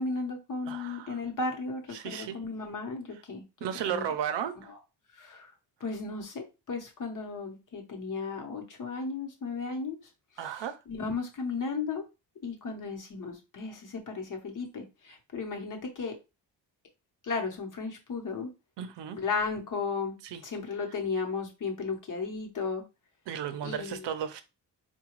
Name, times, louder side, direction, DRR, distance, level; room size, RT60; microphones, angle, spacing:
voice 1, 0.0-3.4 3.8-4.0 5.1-5.5 5.8-10.0 10.4-10.6 10.9-12.1 12.4-16.1 17.2-18.5 19.1-20.2 20.4-22.8 23.6-24.0, left 4 dB, 45° left, 1.0 m, -35 dB
voice 2, 0.7-1.2 1.9-2.4 3.6-4.7 10.4-10.8 18.8-19.2 20.2-20.4 23.3-24.4, right 9 dB, 75° right, 0.6 m, -34 dB
4.7 x 2.3 x 3.0 m
wide cardioid pair, 165°, 43 cm